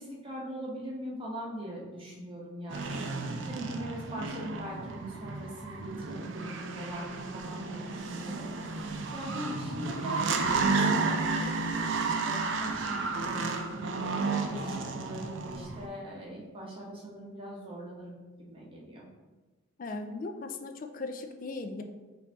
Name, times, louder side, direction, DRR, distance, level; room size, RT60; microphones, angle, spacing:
voice 1, 0.0-3.1 3.5-8.5 9.1-12.9 13.1-13.8 14.4-19.1, equal, 25° right, -4 dB, 1.0 m, -41 dB
sound 1, 2.7-15.9, right 4 dB, 60° right, 0.5 m, -32 dB
voice 2, 19.8-21.8, left 3 dB, 40° left, 6 dB, 0.4 m, -38 dB
5.4 x 2.7 x 3.4 m, 1.2 s
head